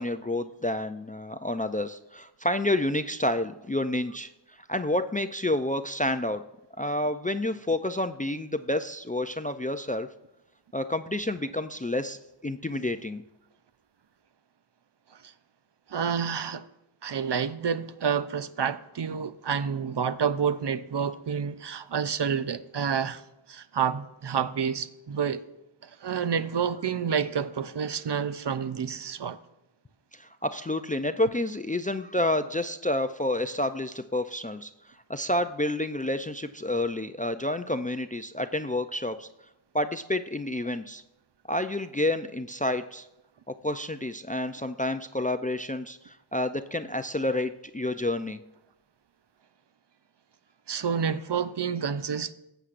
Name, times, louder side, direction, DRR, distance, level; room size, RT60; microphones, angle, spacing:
voice 1, 0.0-6.4 6.8-10.1 10.7-13.2 30.1-39.3 39.7-41.0 41.5-43.1 43.5-48.4, left 1 dB, 20° left, 0.3 m, -29 dB
voice 2, 15.9-16.7 17.0-23.2 23.5-25.4 25.8-29.4 50.7-52.3, right 7 dB, 60° right, 0.6 m, -29 dB
14.5 x 7.9 x 2.5 m
wide cardioid pair, 40°, 49 cm